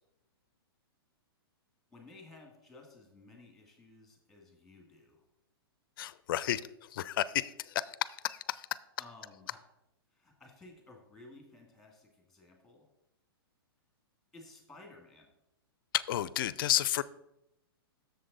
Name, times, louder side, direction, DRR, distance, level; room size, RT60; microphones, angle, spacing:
voice 1, 1.9-5.3 9.0-9.6 10.1-12.9 14.3-15.3, left 2 dB, 5° left, 1 dB, 2.1 m, -55 dB
voice 2, 6.0-8.7 15.9-17.0, left 13 dB, 60° left, 18 dB, 0.4 m, -32 dB
7.5 x 6.8 x 4.1 m, 0.86 s
hypercardioid pair, 135°, 13 cm